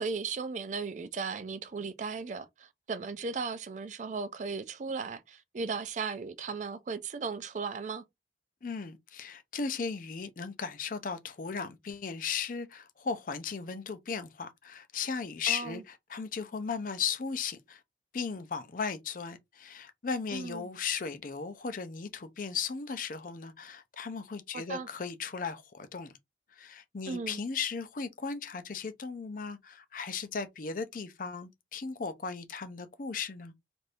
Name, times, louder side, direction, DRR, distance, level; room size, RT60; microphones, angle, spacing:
voice 1, 0.0-8.0 15.5-15.8 20.3-20.7 24.5-24.9 27.1-27.4, right 4 dB, 45° right, 0.4 m, -36 dB
voice 2, 8.6-17.8 18.1-26.2 26.5-33.5, left 5 dB, 50° left, 0.5 m, -36 dB
2.6 x 2.5 x 3.3 m
head